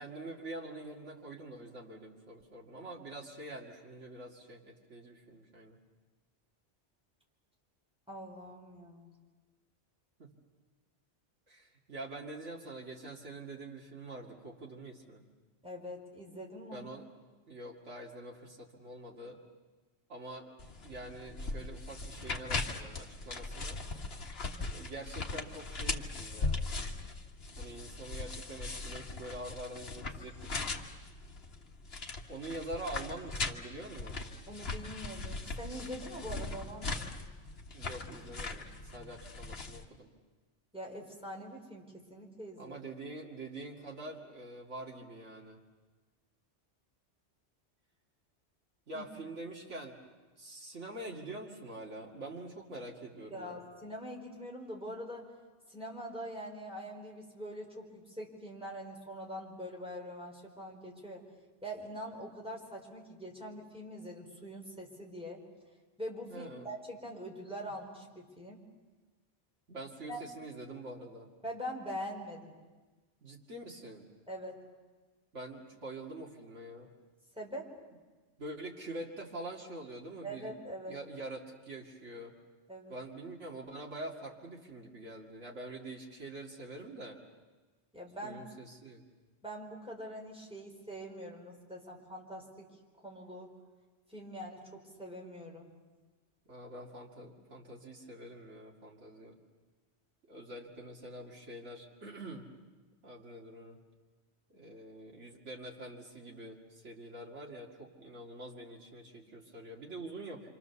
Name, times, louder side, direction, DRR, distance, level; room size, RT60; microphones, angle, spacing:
voice 1, 0.0-5.8 10.2-10.3 11.5-15.2 16.7-17.0 17.5-19.4 20.1-20.5 20.8-23.8 24.7-26.6 27.6-30.8 32.3-34.2 37.7-40.1 42.6-45.6 48.9-50.0 50.4-53.6 66.3-66.7 67.6-67.7 69.7-71.3 73.2-74.1 75.3-76.9 78.4-80.5 80.9-82.3 82.9-87.2 88.2-89.0 96.5-99.4 100.3-102.4 103.0-103.8 104.5-110.5, right 2 dB, 90° right, -2 dB, 2.7 m, -45 dB
voice 2, 8.1-9.1 15.6-16.9 34.5-37.1 40.7-42.7 48.9-49.0 53.3-55.3 55.7-61.2 61.6-65.4 66.0-68.6 70.1-70.2 71.4-72.5 74.3-74.6 77.4-77.7 80.2-81.0 82.7-83.0 87.9-88.4 89.4-92.7 93.0-93.5 94.1-95.7, equal, 5° right, -2 dB, 4.4 m, -43 dB
sound 1, 20.6-39.8, left 3 dB, 60° left, 1.7 m, -39 dB
27.0 x 26.5 x 7.0 m, 1.3 s
omnidirectional pair, 1.2 m